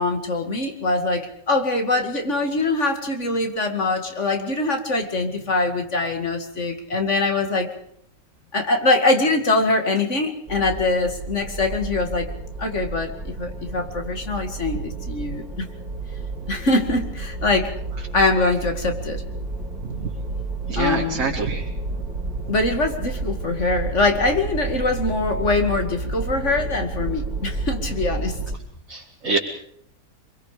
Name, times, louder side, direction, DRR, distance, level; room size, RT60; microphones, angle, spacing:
voice 1, 0.0-7.7 8.5-12.3 12.6-15.7 16.5-17.7 18.1-19.2 20.8-21.4 22.5-28.4, left 2 dB, 50° left, 5 dB, 2.6 m, -23 dB
sound 1, 10.5-28.6, right 3 dB, 85° right, 4.2 m, -31 dB
voice 2, 20.7-21.6 28.9-29.4, right 4 dB, 60° right, -1 dB, 2.5 m, -26 dB
26.0 x 23.0 x 5.1 m, 0.68 s
omnidirectional pair, 1.6 m